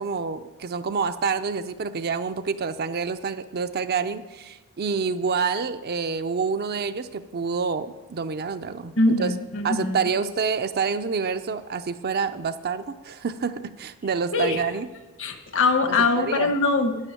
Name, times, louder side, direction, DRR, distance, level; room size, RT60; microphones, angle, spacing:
voice 1, 0.0-9.3 9.6-14.9 16.2-16.5, right 5 dB, 45° right, 9 dB, 0.5 m, -27 dB
voice 2, 9.0-10.0 14.3-14.6 15.2-17.0, left 3 dB, 60° left, 6 dB, 1.4 m, -22 dB
10.5 x 6.8 x 9.2 m, 1.2 s
head